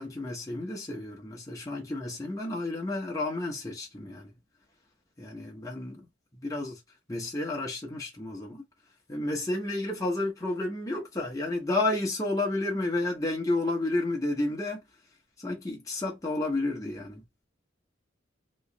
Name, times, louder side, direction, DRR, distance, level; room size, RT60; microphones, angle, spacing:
voice 1, 0.0-4.4 5.2-6.1 6.3-6.8 7.1-8.6 9.1-14.8 15.4-17.2, left 2 dB, 15° left, 1.0 m, -31 dB
3.2 x 3.0 x 2.9 m
head